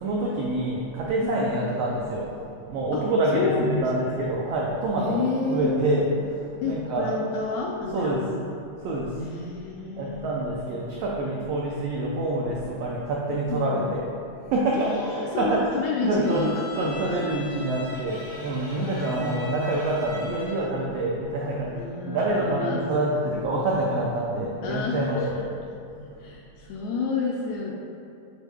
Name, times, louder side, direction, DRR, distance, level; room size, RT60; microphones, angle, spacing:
voice 1, 0.0-2.3 2.7-7.1 7.9-8.2 8.8-9.2 10.0-14.1 14.3-15.7 16.0-25.2 25.9-26.2, right 2 dB, 85° right, -3 dB, 1.4 m, -27 dB
voice 2, 1.2-1.6 2.9-4.1 5.0-5.7 6.6-8.7 9.2-10.4 13.5-13.9 14.7-17.2 18.6-19.7 21.7-22.9 24.6-25.5 26.2-27.8, left 3 dB, 80° left, -2 dB, 1.7 m, -30 dB
Bowed string instrument, 16.2-20.8, left 2 dB, 55° left, 0.6 m, -40 dB
8.2 x 4.1 x 3.5 m, 2.5 s
omnidirectional pair, 3.6 m